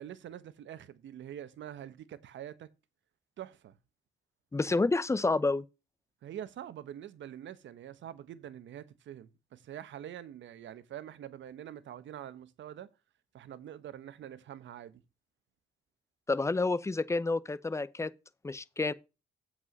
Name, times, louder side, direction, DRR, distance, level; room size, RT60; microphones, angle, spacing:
voice 1, 0.0-2.7 3.4-3.7 6.2-12.9 13.3-15.0, right 10 dB, 70° right, 1.2 m, -45 dB
voice 2, 4.5-5.6 16.3-18.1 18.4-18.9, left 3 dB, 15° left, 0.7 m, -29 dB
8.2 x 4.9 x 6.1 m
cardioid pair, 90°, 20 cm